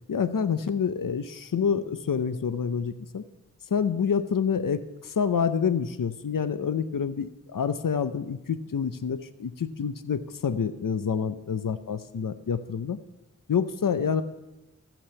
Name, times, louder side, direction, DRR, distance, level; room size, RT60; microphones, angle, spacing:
voice 1, 0.1-3.2 3.7-13.0 13.5-14.2, left 6 dB, 80° left, 12 dB, 0.6 m, -27 dB
14.5 x 6.0 x 7.0 m, 1.0 s
wide cardioid pair, 60°, 33 cm